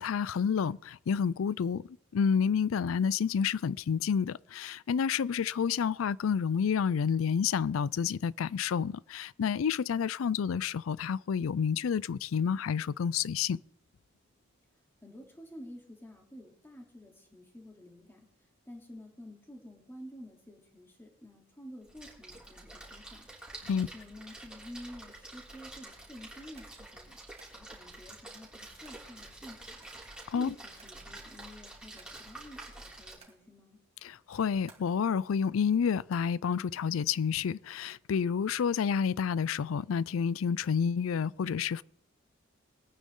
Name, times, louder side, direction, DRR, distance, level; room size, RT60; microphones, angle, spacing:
voice 1, 0.0-13.6 23.7-23.9 30.3-30.5 34.0-41.8, left 7 dB, 90° left, 0.4 m, -29 dB
voice 2, 15.0-18.3 18.7-23.3 23.7-27.2 27.5-29.8 30.3-33.8, equal, 10° left, 2.8 m, -50 dB
Splash splatter, 21.8-33.2, right 2 dB, 5° right, 3.4 m, -48 dB
sound 1, 26.6-26.9 27.4-27.7 28.8-29.1 29.8-30.4 30.8-31.2 31.6-32.4 33.0-33.5 34.4-34.9, right 4 dB, 30° right, 2.4 m, -59 dB
21.5 x 9.4 x 3.8 m
head